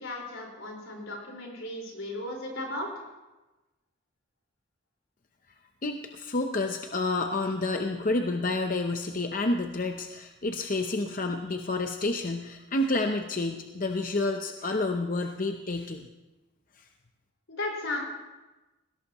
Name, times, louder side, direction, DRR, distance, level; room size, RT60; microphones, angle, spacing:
voice 1, 0.0-2.9 17.5-18.0, left 2 dB, 85° left, -1 dB, 4.7 m, -35 dB
voice 2, 5.8-16.0, left 2 dB, 40° left, 4 dB, 0.7 m, -29 dB
20.0 x 17.0 x 3.0 m, 1.1 s
head